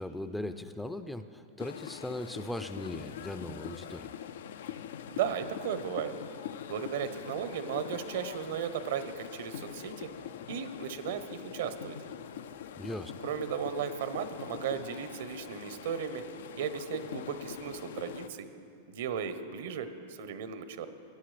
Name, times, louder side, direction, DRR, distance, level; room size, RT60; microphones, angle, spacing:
voice 1, 0.0-4.1 12.8-13.1, left 1 dB, 5° left, 9 dB, 0.4 m, -38 dB
sound 1, 1.6-18.3, left 9 dB, 75° left, 0.3 m, -43 dB
voice 2, 5.1-6.1 6.7-10.1 10.5-12.0 13.2-16.2 16.6-18.5 18.9-20.9, right 8 dB, 75° right, 11 dB, 0.8 m, -35 dB
17.0 x 9.9 x 3.3 m, 2.7 s
hypercardioid pair, 120°, 0 cm